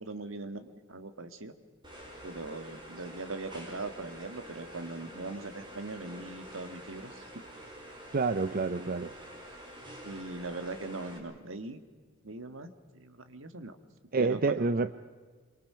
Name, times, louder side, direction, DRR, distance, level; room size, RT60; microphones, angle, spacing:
voice 1, 0.0-1.5 2.2-7.4 8.4-8.9 10.0-11.8 12.2-13.8 14.2-14.7, right 2 dB, 75° right, 10 dB, 1.8 m, -41 dB
sound 1, 1.8-11.2, right 1 dB, 25° right, 5.4 m, -47 dB
voice 2, 8.1-9.1 14.1-14.9, right 3 dB, 45° right, 12 dB, 0.6 m, -28 dB
27.5 x 24.0 x 5.7 m, 1.5 s
head